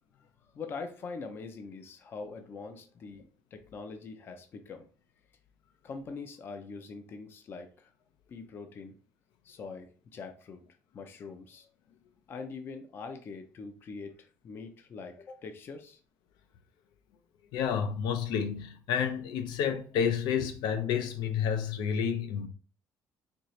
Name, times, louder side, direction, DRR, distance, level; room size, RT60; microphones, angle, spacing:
voice 1, 0.6-4.9 5.8-7.9 8.3-9.0 9.4-10.6 10.9-11.7 12.3-16.0, left 4 dB, 30° left, 0.5 m, -43 dB
voice 2, 17.5-22.5, left 7 dB, 80° left, 0.7 m, -30 dB
4.3 x 2.8 x 3.1 m
cardioid pair, 180°, 7 cm